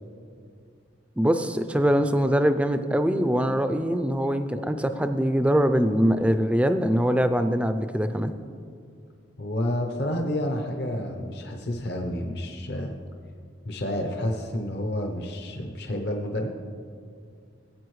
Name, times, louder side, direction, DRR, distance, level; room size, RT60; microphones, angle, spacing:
voice 1, 1.2-8.3, equal, 5° right, 9 dB, 0.3 m, -23 dB
voice 2, 9.4-12.9 13.7-16.5, left 1 dB, 55° left, 3 dB, 0.7 m, -29 dB
17.0 x 8.3 x 3.1 m, 2.3 s
head